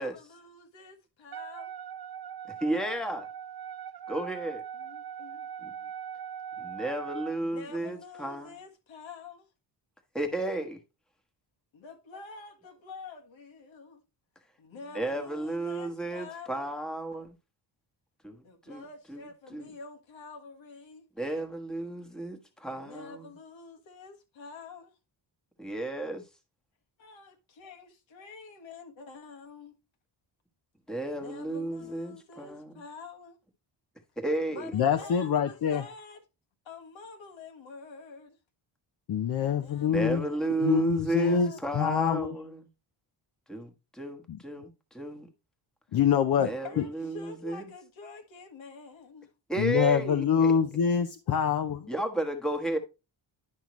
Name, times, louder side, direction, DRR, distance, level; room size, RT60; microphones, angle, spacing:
voice 1, 0.0-1.8 4.7-5.5 7.3-9.5 11.7-14.0 14.6-16.7 18.4-21.1 22.7-25.0 27.0-29.7 31.1-33.4 34.5-36.2 36.6-38.4 39.5-40.8 41.1-41.6 46.4-49.3 50.2-50.7, left 4 dB, 80° left, 1.6 m, -47 dB
Wind instrument woodwind instrument, 1.3-7.4, right 8 dB, 55° right, 0.7 m, -41 dB
voice 2, 2.6-3.3 4.1-4.6 5.6-5.7 6.6-8.5 10.1-10.8 14.9-17.3 18.2-18.8 19.1-19.3 19.5-19.7 21.2-23.3 25.6-26.2 30.9-32.7 34.2-34.7 39.9-42.6 43.5-45.3 46.4-47.7 49.5-50.5 51.9-52.8, right 2 dB, ahead, 1.2 m, -33 dB
voice 3, 34.7-35.8 39.1-40.3 40.6-42.4 44.3-44.4 45.9-46.5 46.8-46.9 49.6-51.9, left 7 dB, 55° left, 0.7 m, -25 dB
10.5 x 5.5 x 3.0 m
wide cardioid pair, 130°, 46 cm